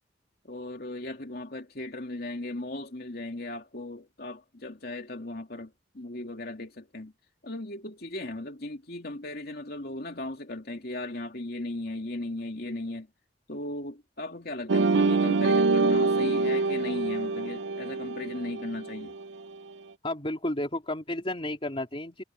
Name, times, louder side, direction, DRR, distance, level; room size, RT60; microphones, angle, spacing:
voice 1, 0.4-7.1 7.4-13.1 13.5-19.1, left 1 dB, 60° left, 2.8 m, -37 dB
sound 1, 14.7-19.3, right 3 dB, 90° right, 0.5 m, -25 dB
voice 2, 20.0-22.2, left 1 dB, 30° left, 3.4 m, -32 dB
head